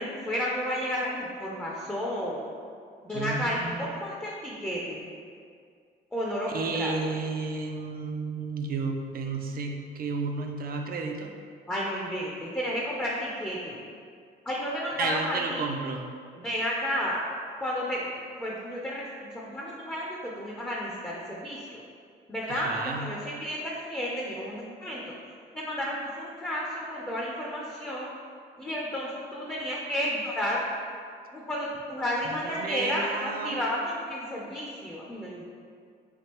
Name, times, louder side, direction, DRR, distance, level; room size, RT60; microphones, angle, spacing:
voice 1, 0.0-2.5 3.0-5.1 6.1-6.9 11.7-13.8 14.5-15.7 16.4-17.2 17.6-18.1 18.4-21.8 22.3-25.1 25.5-28.1 28.6-30.6 31.3-35.5, equal, 10° left, -4 dB, 0.5 m, -32 dB
voice 2, 3.1-4.0 6.5-11.3 15.0-16.1 22.5-23.1 32.2-33.6, right 4 dB, 50° right, 3 dB, 0.5 m, -32 dB
3.5 x 2.3 x 4.3 m, 2.2 s
cardioid pair, 90°, 20 cm